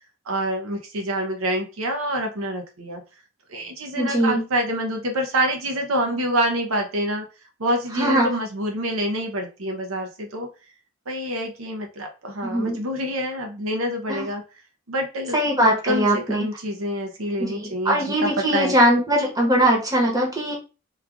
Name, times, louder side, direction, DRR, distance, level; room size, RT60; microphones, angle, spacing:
voice 1, 0.3-3.0 3.5-7.3 7.6-10.5 11.1-14.4 14.9-15.4 15.8-18.8, right 1 dB, 75° right, 3 dB, 0.7 m, -26 dB
voice 2, 4.0-4.4 7.9-8.3 12.4-12.8 14.1-14.3 15.3-16.5 17.4-20.6, equal, 15° right, -1 dB, 1.0 m, -21 dB
3.2 x 2.4 x 3.5 m, 0.31 s
head